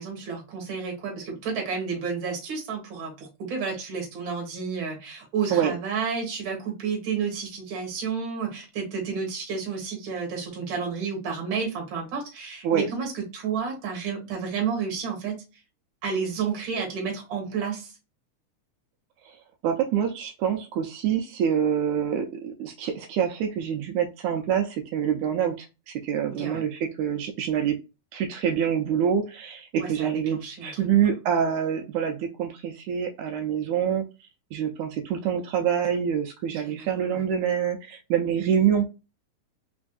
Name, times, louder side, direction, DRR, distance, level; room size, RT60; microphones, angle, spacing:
voice 1, 0.0-15.4 16.0-17.9 26.3-26.6 29.8-30.7 36.5-37.3, right 6 dB, 50° right, 1.9 m, -31 dB
voice 2, 19.6-27.8 28.1-34.0 34.5-38.8, right 8 dB, 80° right, 2.0 m, -26 dB
4.3 x 3.5 x 2.3 m
omnidirectional pair, 3.4 m